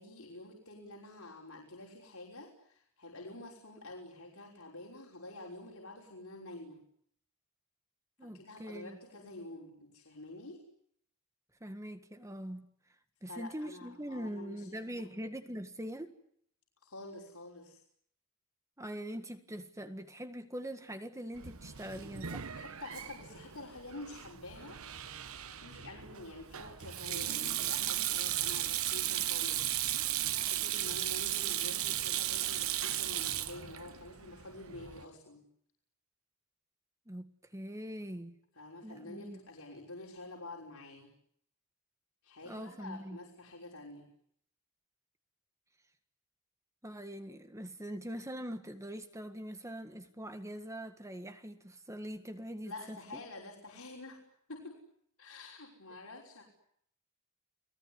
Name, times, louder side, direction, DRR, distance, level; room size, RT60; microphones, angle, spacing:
voice 1, 0.0-6.8 8.2-10.6 13.2-15.1 16.8-17.8 22.5-24.8 25.2-35.4 38.5-41.1 42.2-44.1 52.7-54.2 54.5-54.8 55.2-56.4, left 2 dB, 75° left, 5.8 m, -48 dB
voice 2, 8.2-9.0 11.6-12.7 13.2-16.1 18.8-22.5 37.1-38.3 38.8-39.4 42.4-43.2 46.8-53.2, equal, 15° right, 1.7 m, -43 dB
Sink (filling or washing), 21.4-35.0, right 12 dB, 70° right, 1.2 m, -36 dB
30.0 x 20.0 x 9.8 m
head